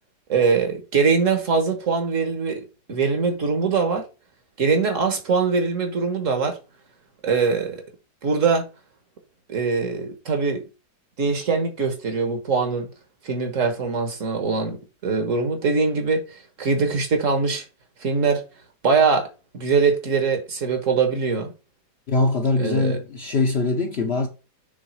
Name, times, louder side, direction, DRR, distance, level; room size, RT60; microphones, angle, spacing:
voice 1, 0.3-4.0 4.6-6.6 7.2-7.8 8.2-8.7 9.5-10.6 11.2-12.9 13.2-17.6 18.0-18.4 18.8-19.3 19.5-21.5 22.6-23.0, right 4 dB, 50° right, 1.5 m, -22 dB
voice 2, 22.1-24.3, left 3 dB, 50° left, 0.9 m, -22 dB
6.2 x 3.6 x 4.8 m
omnidirectional pair, 1.8 m